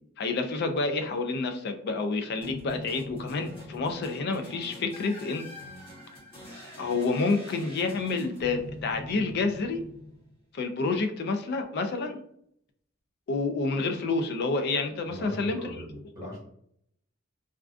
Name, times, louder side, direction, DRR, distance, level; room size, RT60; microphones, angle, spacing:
voice 1, 0.2-5.5 6.8-9.8 10.5-12.2 13.3-15.6, left 3 dB, 55° left, 6 dB, 0.3 m, -29 dB
sound 1, 2.4-10.6, left 1 dB, 25° left, 0.8 m, -44 dB
voice 2, 15.1-16.4, equal, 15° right, -5 dB, 1.1 m, -40 dB
2.4 x 2.3 x 2.3 m, 0.67 s
head